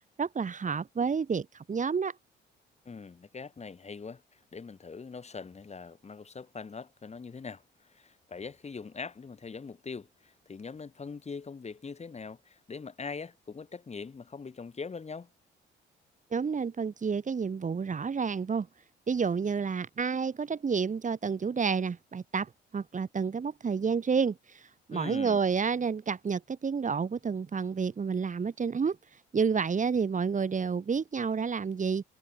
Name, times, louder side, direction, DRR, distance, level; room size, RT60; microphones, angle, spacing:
voice 1, 0.2-2.1 16.3-18.7 19.1-29.0 29.3-32.0, right 5 dB, 40° right, 5.1 m, -30 dB
voice 2, 2.8-15.3 24.9-25.4, left 5 dB, 35° left, 4.5 m, -42 dB
cardioid pair, 90°, 20 cm